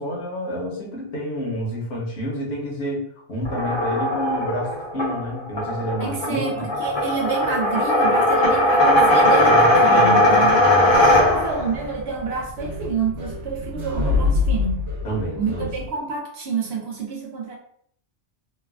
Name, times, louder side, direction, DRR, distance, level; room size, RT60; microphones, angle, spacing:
voice 1, 0.0-6.6 9.4-11.4 15.0-15.7, equal, 70° left, -1 dB, 1.1 m, -29 dB
sound 1, 3.4-11.7, left 1 dB, 35° left, 0.5 m, -18 dB
voice 2, 6.0-10.6 11.1-14.9 15.4-17.5, right 5 dB, 65° right, -1 dB, 1.0 m, -28 dB
sound 2, 10.9-15.9, left 4 dB, 85° right, 1.2 m, -27 dB
3.1 x 2.2 x 2.3 m, 0.63 s
omnidirectional pair, 1.2 m